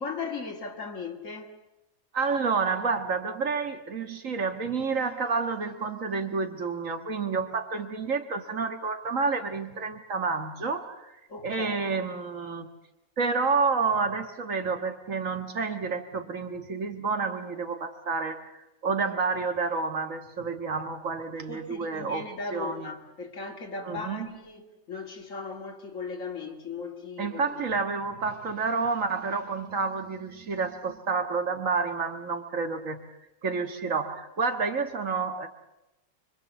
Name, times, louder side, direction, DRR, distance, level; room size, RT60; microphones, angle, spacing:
voice 1, 0.0-1.5 11.3-11.9 21.5-27.6, left 4 dB, 65° left, 2.7 m, -37 dB
voice 2, 2.1-11.1 11.4-12.7 13.2-18.5 18.8-22.3 22.5-22.9 23.9-24.3 27.2-33.0 33.4-35.5, right 4 dB, 70° right, 2.0 m, -29 dB
25.5 x 24.0 x 7.1 m
omnidirectional pair, 1.4 m